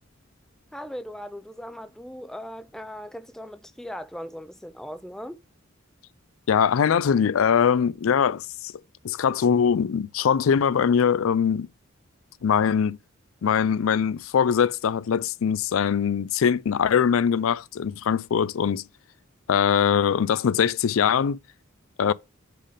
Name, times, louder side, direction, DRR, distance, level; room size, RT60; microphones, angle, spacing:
voice 1, 0.7-5.4 22.0-22.1, equal, ahead, 0.4 m, -38 dB
voice 2, 6.5-8.7 9.0-11.7 12.4-13.0 13.4-18.8 19.5-21.4 22.0-22.1, left 7 dB, 80° left, 0.4 m, -22 dB
7.7 x 3.4 x 5.1 m
head